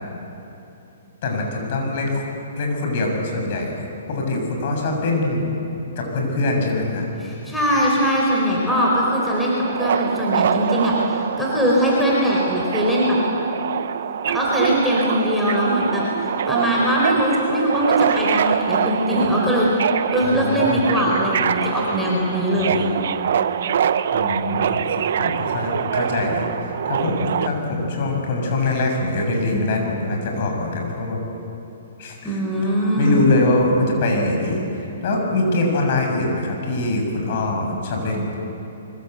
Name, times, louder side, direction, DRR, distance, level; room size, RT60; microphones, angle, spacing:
voice 1, 1.2-2.3 2.6-3.8 4.1-5.5 6.0-7.1 20.2-20.9 22.5-23.0 24.1-31.2 32.0-38.2, left 2 dB, 45° left, 1 dB, 7.1 m, -23 dB
voice 2, 7.2-11.0 11.4-13.2 14.3-19.7 20.1-22.9 32.2-33.2, equal, 5° left, -5 dB, 4.5 m, -21 dB
Subway metro underground, 8.7-27.5, right 8 dB, 60° right, 1.0 m, -24 dB
25.0 x 24.5 x 8.2 m, 2.9 s
hypercardioid pair, 155°, 0 cm